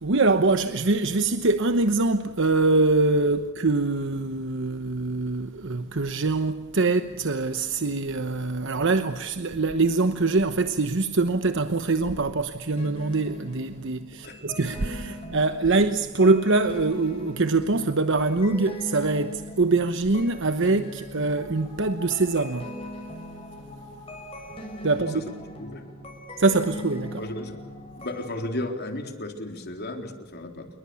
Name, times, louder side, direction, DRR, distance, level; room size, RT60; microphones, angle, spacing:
voice 1, 0.0-22.7 24.8-25.2 26.4-27.2, right 3 dB, 65° right, 1.0 m, -24 dB
sound 1, 12.8-28.5, equal, 30° left, 6.7 m, -40 dB
voice 2, 27.2-27.5 28.0-30.7, left 1 dB, 50° left, 3.8 m, -34 dB
28.5 x 22.5 x 7.1 m
head